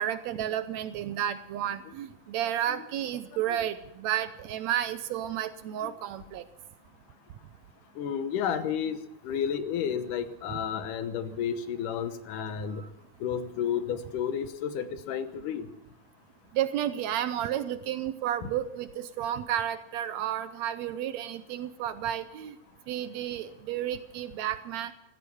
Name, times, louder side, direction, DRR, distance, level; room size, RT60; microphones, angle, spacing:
voice 1, 0.0-6.4 10.5-10.6 12.7-12.9 16.5-22.5 22.9-24.9, right 11 dB, 75° right, 12 dB, 1.7 m, -32 dB
voice 2, 8.0-12.8 13.2-15.7, left 8 dB, 80° left, 11 dB, 2.6 m, -32 dB
15.0 x 13.5 x 7.0 m, 0.83 s
omnidirectional pair, 3.7 m